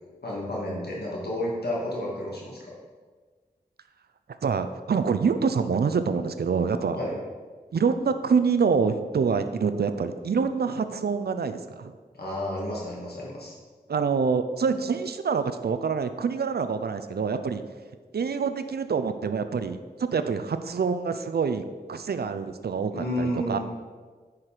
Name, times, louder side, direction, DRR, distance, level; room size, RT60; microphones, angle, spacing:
voice 1, 0.2-2.7 6.9-7.2 12.1-13.5 22.9-23.6, left 1 dB, 90° left, -5 dB, 2.3 m, -31 dB
voice 2, 4.4-7.0 7.7-11.9 13.9-17.6 18.1-21.6 21.9-23.6, right 5 dB, 85° right, 10 dB, 0.5 m, -26 dB
9.6 x 5.0 x 4.6 m, 1.5 s
wide cardioid pair, 60°, 16 cm